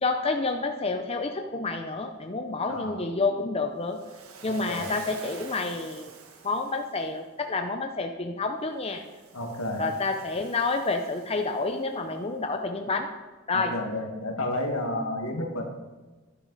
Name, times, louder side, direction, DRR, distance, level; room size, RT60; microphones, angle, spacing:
voice 1, 0.0-4.0 4.4-6.1 6.4-9.0 9.8-13.1 13.5-13.7, left 3 dB, 25° left, 4 dB, 0.6 m, -29 dB
voice 2, 2.7-3.0 4.5-4.9 9.3-9.8 13.5-15.7, left 1 dB, 75° left, 3 dB, 1.9 m, -31 dB
Waves surf, 3.9-7.1 8.9-12.0, right 5 dB, 85° right, 1.5 m, -47 dB
12.5 x 11.0 x 4.1 m, 1.2 s
head